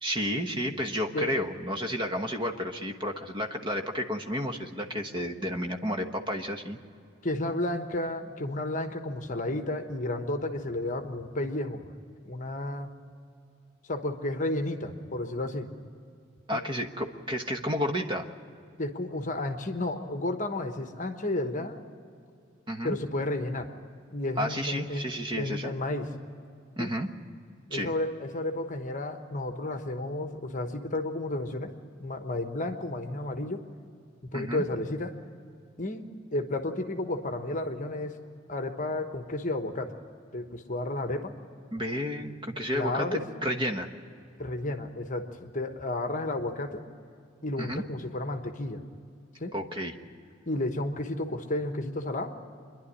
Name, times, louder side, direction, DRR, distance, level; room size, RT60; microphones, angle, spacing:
voice 1, 0.0-6.8 16.5-18.3 22.7-23.0 24.4-25.7 26.8-27.1 27.7-27.9 34.3-34.6 41.7-43.9 47.6-47.8 49.5-49.9, equal, 25° right, 4 dB, 1.2 m, -31 dB
voice 2, 7.2-11.9 12.2-12.9 13.8-15.7 16.5-16.6 18.8-21.8 22.8-23.7 24.1-25.1 25.4-26.1 26.8-26.9 27.7-31.7 32.0-33.7 34.2-35.1 35.8-38.1 38.5-39.9 40.3-41.3 42.7-43.2 44.4-46.8 47.4-48.8 49.4-49.5 50.4-52.3, left 1 dB, 35° left, 6 dB, 1.1 m, -32 dB
26.0 x 11.0 x 9.9 m, 2.4 s
head